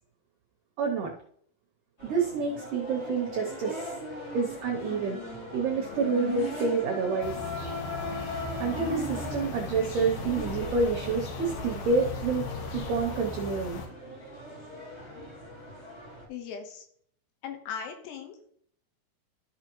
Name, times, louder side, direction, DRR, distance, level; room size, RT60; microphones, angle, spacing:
voice 1, 0.8-1.1 2.0-3.9 4.3-5.2 5.5-7.4 8.6-12.5 12.7-13.8, right 4 dB, 80° right, 0 dB, 1.9 m, -28 dB
sound 1, 2.0-16.2, left 1 dB, 30° left, 1.2 m, -39 dB
sound 2, 7.2-13.9, left 4 dB, 70° left, 2.4 m, -38 dB
voice 2, 16.3-16.8 17.4-18.5, left 7 dB, 85° left, 4 dB, 3.3 m, -39 dB
13.5 x 5.2 x 3.0 m, 0.63 s
omnidirectional pair, 4.8 m